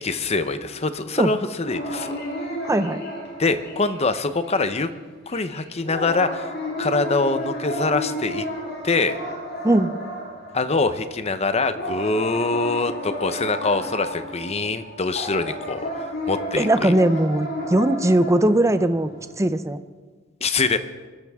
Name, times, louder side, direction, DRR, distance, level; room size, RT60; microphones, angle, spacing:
voice 1, 0.0-2.2 3.4-4.9 5.3-6.5 6.8-8.5 8.8-9.2 10.5-15.9 16.3-16.9 20.4-20.8, left 3 dB, 35° left, 11 dB, 0.8 m, -24 dB
sound 1, 1.6-4.2 4.4-4.9 5.3-11.4 11.7-19.3, equal, 60° left, 4.6 m, -32 dB
voice 2, 2.6-3.0 9.6-9.9 16.6-19.1 19.4-19.8, right 1 dB, 15° right, 11 dB, 0.6 m, -19 dB
23.5 x 13.5 x 3.6 m, 1.4 s
head